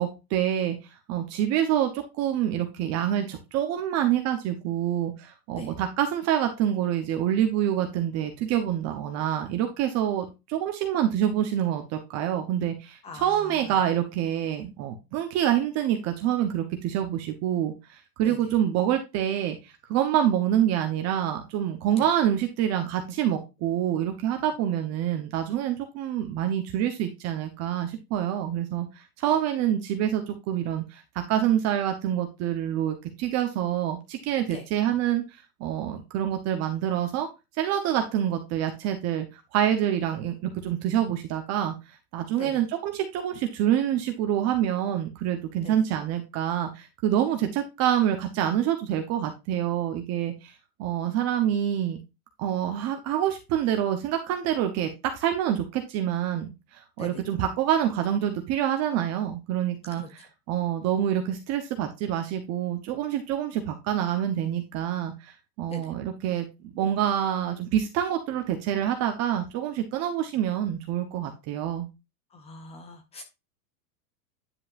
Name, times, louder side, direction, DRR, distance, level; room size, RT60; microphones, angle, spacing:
voice 1, 0.0-37.3 37.6-52.0 52.4-71.9, right 10 dB, 30° right, 6 dB, 1.0 m, -27 dB
voice 2, 13.0-13.8 18.2-18.4 22.0-22.1 34.5-34.7 42.4-42.6 45.6-45.8 57.0-57.2 59.9-60.3 65.7-65.9 72.3-73.2, left 3 dB, 15° left, 8 dB, 0.4 m, -42 dB
9.7 x 5.4 x 2.5 m, 0.25 s
supercardioid pair, 140°, 49 cm